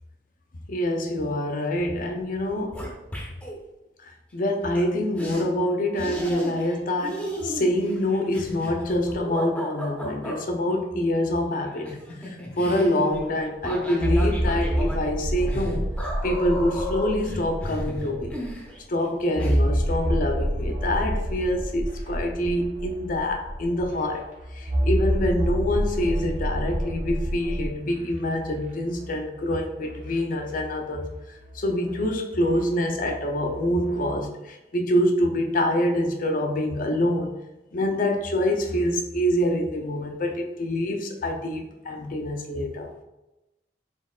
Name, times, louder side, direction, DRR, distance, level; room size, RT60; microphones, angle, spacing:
voice 1, 0.7-2.8 4.0-11.9 12.2-15.9 16.2-18.4 18.9-24.3 24.5-31.1 31.5-34.3 34.7-37.4 37.7-42.9, left 1 dB, 50° left, 4 dB, 0.5 m, -26 dB
sound 1, 2.0-2.1 2.3-3.6 4.8-4.9 5.2-5.4 6.0-6.8 7.0-10.4 11.5-19.1 19.4-19.6, equal, 5° left, 0.7 m, -35 dB
sound 2, 13.1-13.2 14.0-18.5 19.4-24.0 24.7-27.7, right 1 dB, 30° right, 0.4 m, -27 dB
sound 3, 19.3-34.1, equal, 45° right, 1.0 m, -44 dB
4.2 x 3.9 x 2.3 m, 1.0 s
head